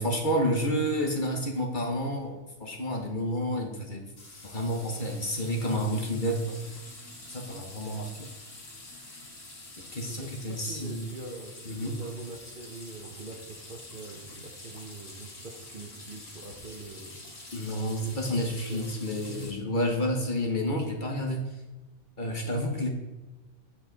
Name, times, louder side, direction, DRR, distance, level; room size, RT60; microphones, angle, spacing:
voice 1, 0.0-2.3 2.6-4.0 4.4-6.6 7.3-8.3 9.9-11.1 11.7-11.9 17.5-21.5 22.2-22.9, equal, 40° left, 2 dB, 1.3 m, -30 dB
sound 1, 4.2-19.5, left 2 dB, 65° left, 2.2 m, -47 dB
voice 2, 10.0-17.3 18.0-18.2 18.7-18.9, right 3 dB, 45° right, 2 dB, 1.0 m, -44 dB
8.5 x 8.1 x 4.0 m, 1.1 s
omnidirectional pair, 1.4 m